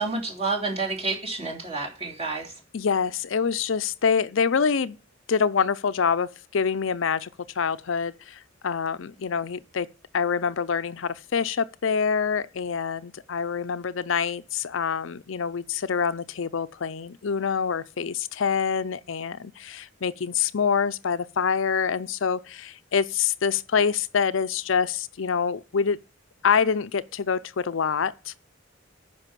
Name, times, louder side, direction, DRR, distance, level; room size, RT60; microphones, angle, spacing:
voice 1, 0.0-2.5, right 3 dB, 30° right, 3.2 m, -29 dB
voice 2, 2.7-5.0 5.3-9.9 10.1-26.0 26.4-28.4, left 6 dB, 70° left, 0.5 m, -26 dB
9.7 x 6.0 x 7.5 m
head